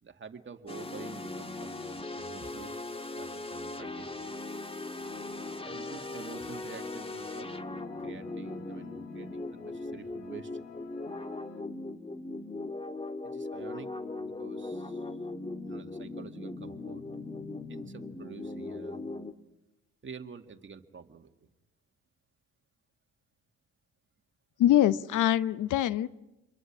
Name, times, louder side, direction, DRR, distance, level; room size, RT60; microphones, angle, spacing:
voice 1, 0.0-2.7 3.2-4.2 5.6-7.5 8.0-10.6 13.2-15.1 15.7-17.1 17.7-19.0 20.0-21.3, right 5 dB, 40° right, 6 dB, 2.2 m, -48 dB
sound 1, 0.7-19.3, left 2 dB, 15° left, 1.7 m, -39 dB
sound 2, 4.9-11.6, left 6 dB, 50° left, 2.7 m, -52 dB
voice 2, 24.6-26.1, left 12 dB, 70° left, 16 dB, 0.9 m, -24 dB
29.0 x 23.0 x 6.2 m, 0.96 s
supercardioid pair, 70°, 32 cm